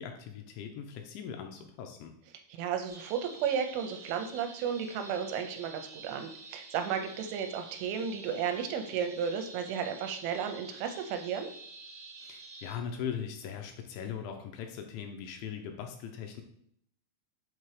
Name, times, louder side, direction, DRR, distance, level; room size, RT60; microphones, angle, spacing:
voice 1, 0.0-2.1 12.2-16.4, left 7 dB, 80° left, 4 dB, 2.8 m, -40 dB
voice 2, 2.5-11.5, right 7 dB, 85° right, 7 dB, 3.0 m, -33 dB
sound 1, 2.9-12.7, right 3 dB, 60° right, 1.2 m, -49 dB
7.4 x 2.9 x 4.8 m, 0.70 s
omnidirectional pair, 5.5 m